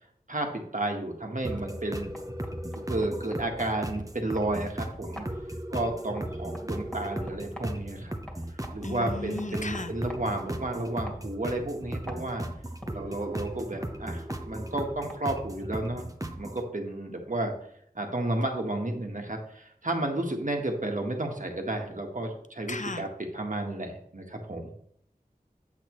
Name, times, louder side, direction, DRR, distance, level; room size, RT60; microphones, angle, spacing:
voice 1, 0.3-2.1 2.7-5.2 5.7-8.1 8.7-12.5 12.9-16.1 16.4-17.5 17.9-24.7, right 2 dB, 55° right, 2 dB, 1.6 m, -32 dB
sound 1, 1.4-16.6, right 1 dB, 20° right, 0.8 m, -37 dB
sound 2, 1.9-15.6, equal, 5° left, 2.0 m, -48 dB
voice 2, 8.8-9.9 22.7-23.0, left 3 dB, 50° left, 9 dB, 0.8 m, -35 dB
8.5 x 8.1 x 3.2 m, 0.69 s
wide cardioid pair, 40°, 16 cm